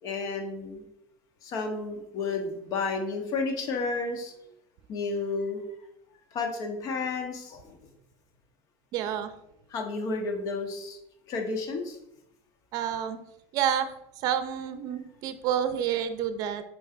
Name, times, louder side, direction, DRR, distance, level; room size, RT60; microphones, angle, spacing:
voice 1, 0.0-0.8 1.4-4.3 4.9-5.6 6.3-7.8 9.7-11.0 11.3-12.0, left 3 dB, 50° left, 4 dB, 1.5 m, -31 dB
voice 2, 8.9-9.3 12.7-13.2 13.5-13.9 14.2-16.6, right 9 dB, 55° right, 11 dB, 0.7 m, -29 dB
7.7 x 4.6 x 4.6 m, 0.83 s
cardioid pair, 140°, 8 cm